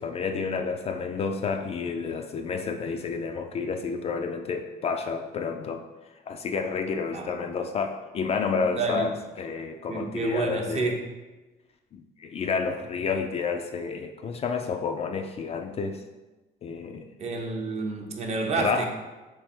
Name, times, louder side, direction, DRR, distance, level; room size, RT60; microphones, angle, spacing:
voice 1, 0.0-5.8 6.3-10.9 11.9-16.0 16.6-17.1 18.6-18.9, left 5 dB, 40° left, 5 dB, 0.3 m, -30 dB
voice 2, 8.7-9.1 9.9-11.0 17.2-18.9, right 3 dB, 40° right, 2 dB, 0.7 m, -29 dB
3.4 x 3.3 x 4.3 m, 1.2 s
cardioid pair, 110°, 17 cm